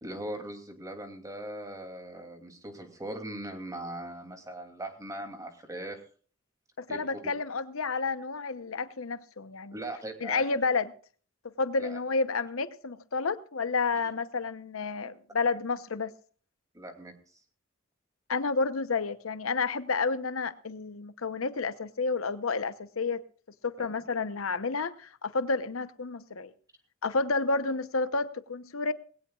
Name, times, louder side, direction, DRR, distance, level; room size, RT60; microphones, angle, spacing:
voice 1, 0.0-6.0 6.9-7.3 9.7-10.4 11.8-12.0 16.7-17.4 23.8-24.0, right 1 dB, 15° right, 2.7 m, -40 dB
voice 2, 6.8-9.8 10.2-10.9 11.6-16.1 18.3-23.2 23.6-26.5 27.0-28.9, left 4 dB, 90° left, 0.9 m, -30 dB
19.5 x 17.0 x 2.4 m
head